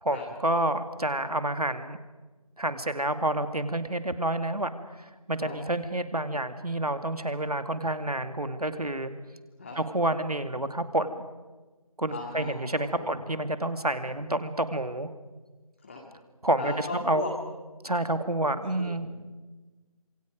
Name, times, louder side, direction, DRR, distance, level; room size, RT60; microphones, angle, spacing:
voice 1, 0.0-2.0 2.6-4.7 5.0-9.1 9.8-11.2 12.0-15.1 16.4-17.3 17.8-19.1, right 1 dB, 80° right, 9 dB, 2.3 m, -29 dB
voice 2, 12.1-12.5 13.0-13.1 15.8-16.0 16.6-17.3 18.8-19.1, left 3 dB, 20° left, -2 dB, 2.3 m, -37 dB
28.5 x 26.5 x 5.3 m, 1.2 s
figure-of-eight pair, 165°, 19 cm